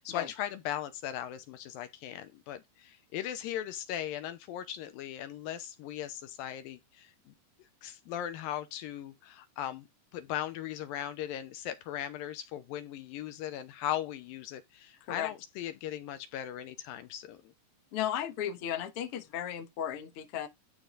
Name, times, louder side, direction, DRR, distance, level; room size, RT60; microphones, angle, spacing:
voice 1, 0.0-7.3 7.8-9.9 10.1-17.5, left 11 dB, 80° left, 2.4 m, -38 dB
voice 2, 17.9-20.5, left 10 dB, 60° left, 1.5 m, -35 dB
11.5 x 3.9 x 3.8 m
omnidirectional pair, 4.3 m